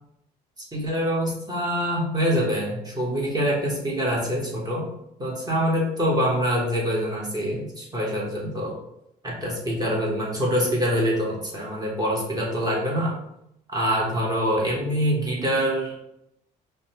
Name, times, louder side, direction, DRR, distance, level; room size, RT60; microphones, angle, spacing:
voice 1, 0.7-4.9 5.2-8.8 9.2-13.1 13.7-15.9, equal, 20° right, -4 dB, 1.1 m, -25 dB
5.1 x 2.2 x 2.9 m, 0.80 s
cardioid pair, 110°, 17 cm